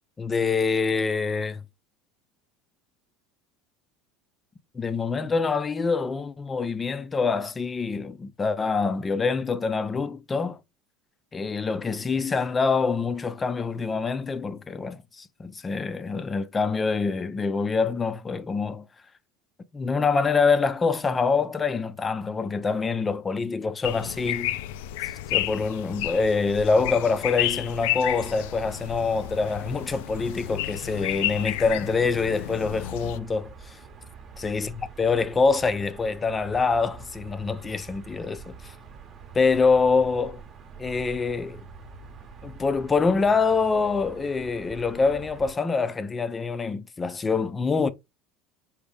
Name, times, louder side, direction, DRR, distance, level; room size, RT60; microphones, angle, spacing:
voice 1, 0.2-1.6 4.7-10.6 11.3-18.8 19.7-24.6 25.0-33.8 34.4-38.7 39.3-40.4 40.8-41.6 42.4-47.9, left 4 dB, 15° left, 0.5 m, -25 dB
sound 1, 23.8-33.2, left 14 dB, 80° left, 0.4 m, -31 dB
sound 2, 28.1-45.5, right 5 dB, 30° right, 0.9 m, -46 dB
5.0 x 2.7 x 3.4 m
supercardioid pair, 140°, 0 cm